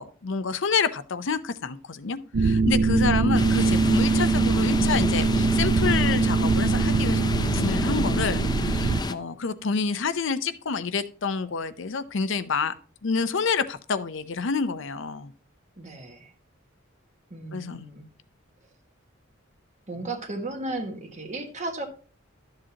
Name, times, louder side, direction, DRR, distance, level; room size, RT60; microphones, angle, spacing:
voice 1, 0.0-7.2 7.5-12.7 13.0-15.3 17.5-17.9, left 5 dB, 65° left, 0.6 m, -28 dB
sound 1, 2.3-9.0, right 4 dB, 85° right, 0.5 m, -22 dB
sound 2, 3.3-9.1, left 2 dB, 20° left, 0.4 m, -30 dB
voice 2, 15.8-16.3 17.3-18.0 19.9-21.9, right 2 dB, 35° right, 1.5 m, -35 dB
12.0 x 7.7 x 2.9 m
head